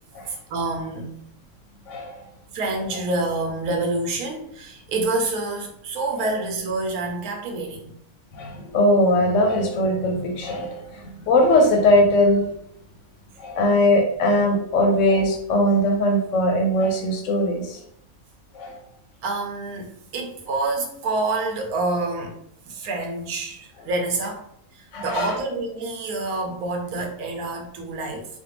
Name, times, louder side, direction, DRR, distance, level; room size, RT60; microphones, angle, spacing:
voice 1, 0.3-1.2 2.5-7.9 19.2-22.4 22.7-24.4 24.7-28.3, right 2 dB, 85° right, 2 dB, 1.1 m, -27 dB
voice 2, 1.9-2.2 6.2-6.3 8.3-12.4 13.4-17.8 18.5-18.8 24.9-25.3, left 1 dB, 70° left, 2 dB, 0.8 m, -20 dB
3.2 x 2.2 x 2.9 m, 0.72 s
omnidirectional pair, 1.5 m